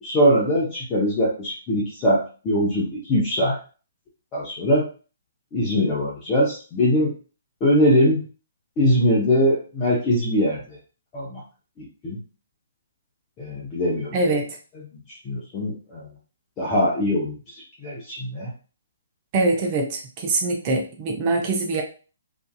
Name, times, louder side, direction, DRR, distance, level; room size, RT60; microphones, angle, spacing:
voice 1, 0.0-3.6 4.3-4.9 5.5-7.1 7.6-8.2 8.8-10.6 11.1-11.4 11.8-12.2 13.4-14.2 15.2-16.0 16.6-17.3 17.8-18.5, equal, 25° left, -6 dB, 0.8 m, -21 dB
voice 2, 14.1-14.5 19.3-21.8, right 2 dB, 30° right, 1 dB, 0.5 m, -23 dB
2.6 x 2.4 x 2.3 m, 0.36 s
figure-of-eight pair, 130°, 0 cm